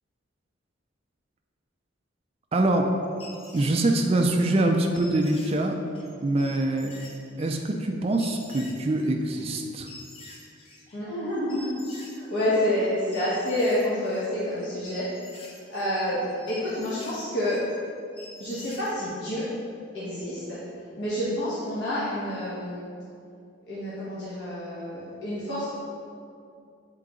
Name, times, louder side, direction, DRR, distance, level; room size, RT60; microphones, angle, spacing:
voice 1, 2.5-2.9 3.5-5.8 6.2-6.9 7.4-9.9, right 2 dB, 30° right, 3 dB, 0.4 m, -24 dB
sound 1, 2.7-4.4 4.9-11.0 11.3-12.9 13.1-18.9, left 2 dB, 30° left, 0.7 m, -47 dB
voice 2, 10.9-15.1 15.7-16.2 16.5-17.6 18.4-19.5 19.9-20.6 21.0-22.8 23.7-25.7, left 1 dB, 60° left, -11 dB, 1.2 m, -28 dB
7.7 x 3.8 x 3.7 m, 2.4 s
head